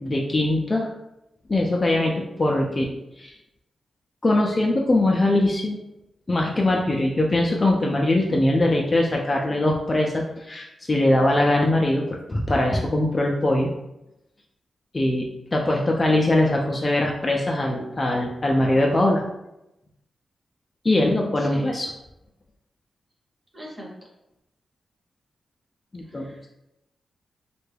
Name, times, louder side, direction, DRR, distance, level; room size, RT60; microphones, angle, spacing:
voice 1, 0.0-0.9 1.5-3.3 4.2-5.8 6.3-13.7 14.9-19.2 20.8-21.9 25.9-26.3, left 1 dB, 25° left, -1 dB, 0.3 m, -22 dB
voice 2, 20.9-21.7 23.5-23.9 26.1-26.5, left 1 dB, 15° right, -2 dB, 0.8 m, -39 dB
3.2 x 2.2 x 3.2 m, 0.90 s
wide cardioid pair, 125°, 0 cm